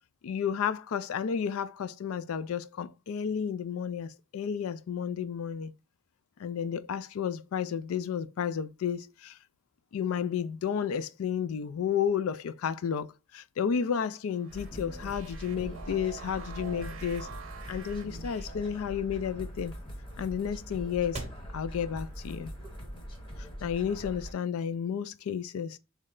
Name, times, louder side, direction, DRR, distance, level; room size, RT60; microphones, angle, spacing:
voice 1, 0.2-5.7 6.4-9.4 9.9-17.3 17.7-19.7 20.2-21.2 21.5-22.5 23.6-25.8, left 7 dB, 80° left, 0.3 m, -32 dB
sound 1, 14.4-18.8, right 5 dB, 70° right, 0.7 m, -46 dB
sound 2, 14.5-24.3, equal, 25° left, 0.8 m, -42 dB
sound 3, 16.1-23.2, right 3 dB, 30° right, 0.6 m, -50 dB
3.2 x 3.1 x 3.7 m
head